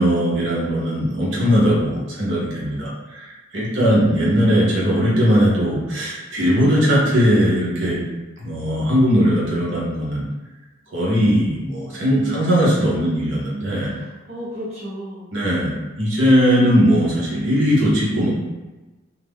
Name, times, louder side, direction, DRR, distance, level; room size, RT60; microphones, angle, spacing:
voice 1, 0.0-8.0 8.4-10.2 10.9-13.9 15.3-15.7 16.0-18.3, equal, 75° right, -5 dB, 0.8 m, -19 dB
voice 2, 3.7-4.1 4.5-4.8 6.7-6.9 12.2-12.7 13.9-14.0 14.3-15.3, equal, 35° right, -8 dB, 0.8 m, -33 dB
2.4 x 2.1 x 3.3 m, 1.1 s
head